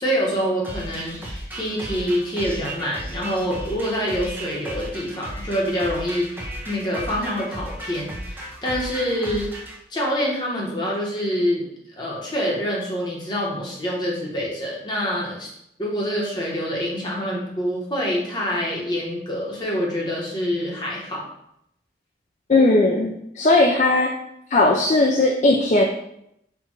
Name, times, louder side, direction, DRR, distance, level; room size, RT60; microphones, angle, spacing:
voice 1, 0.0-9.5 9.9-11.7 12.0-15.5 15.8-21.2, equal, 25° left, -3 dB, 1.1 m, -26 dB
sound 1, 0.6-9.8, right 1 dB, 10° right, 0.6 m, -35 dB
voice 2, 22.5-24.1 24.5-25.8, left 2 dB, 40° left, 2 dB, 0.3 m, -18 dB
4.5 x 2.5 x 4.5 m, 0.76 s
head